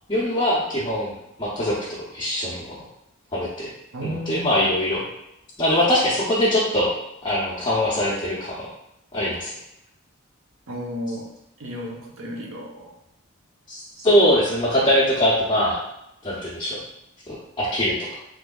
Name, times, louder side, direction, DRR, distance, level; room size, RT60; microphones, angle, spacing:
voice 1, 0.1-1.1 1.4-2.8 3.3-3.7 4.3-5.0 5.6-6.9 7.2-8.7 9.1-9.5 13.7-15.8 16.2-16.8 17.3-18.1, left 1 dB, 20° left, -9 dB, 0.7 m, -22 dB
voice 2, 3.9-4.5 10.7-11.3 11.6-13.0 14.0-14.1, equal, 85° right, -1 dB, 0.8 m, -33 dB
3.4 x 3.4 x 2.3 m, 0.81 s
head